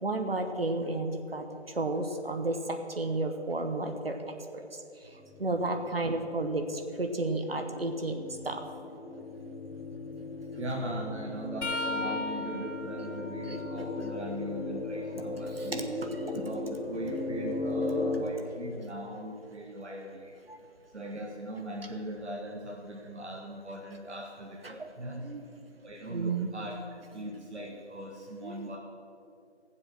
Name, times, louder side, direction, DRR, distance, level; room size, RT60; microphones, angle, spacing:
voice 1, 0.0-4.2 5.1-8.2 8.4-8.6 9.0-9.2 10.5-10.6 12.1-12.6 13.0-14.6 15.5-17.0 17.8-18.2 20.5-20.6 24.6-25.7 26.1-26.5 28.4-28.7, right 2 dB, 55° right, 5 dB, 1.1 m, -34 dB
sound 1, 5.0-18.1, left 3 dB, 5° right, 0.9 m, -38 dB
voice 2, 10.6-15.8 16.3-20.3 20.9-25.2 25.8-26.8 27.1-28.8, right 1 dB, 75° right, 0 dB, 1.5 m, -39 dB
sound 2, 11.6-15.4 15.9-17.9 20.8-21.0 22.2-22.4 23.7-23.8, left 2 dB, 85° left, 1.6 m, -40 dB
13.5 x 7.6 x 6.1 m, 2.6 s
figure-of-eight pair, 170°, 34 cm